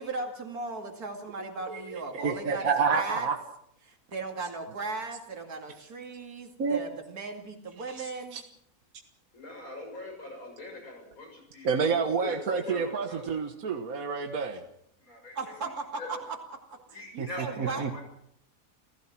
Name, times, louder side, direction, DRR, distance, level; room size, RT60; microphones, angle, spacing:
voice 1, 0.0-3.3 3.8-8.4 15.3-16.4 16.9-18.0, right 4 dB, 90° right, 2 dB, 3.0 m, -37 dB
voice 2, 1.7-3.4 6.6-6.8 7.9-8.1 8.3-8.4 11.6-14.6 17.2-17.3 17.6-18.0, right 5 dB, 70° right, 5 dB, 1.8 m, -29 dB
voice 3, 2.8-3.2 9.3-13.3 15.0-16.2 16.9-18.0, left 2 dB, 70° left, 2 dB, 6.8 m, -43 dB
28.5 x 15.5 x 6.1 m, 0.72 s
omnidirectional pair, 1.5 m